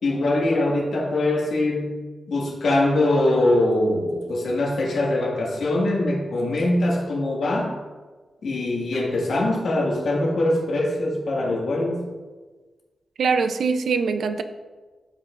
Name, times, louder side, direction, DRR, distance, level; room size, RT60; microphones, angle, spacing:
voice 1, 0.0-2.0 2.3-7.8 8.4-12.0, left 1 dB, 85° left, -3 dB, 1.7 m, -22 dB
voice 2, 13.2-14.4, right 5 dB, 75° right, 10 dB, 0.4 m, -22 dB
13.0 x 5.2 x 2.5 m, 1.3 s
wide cardioid pair, 180°, 0 cm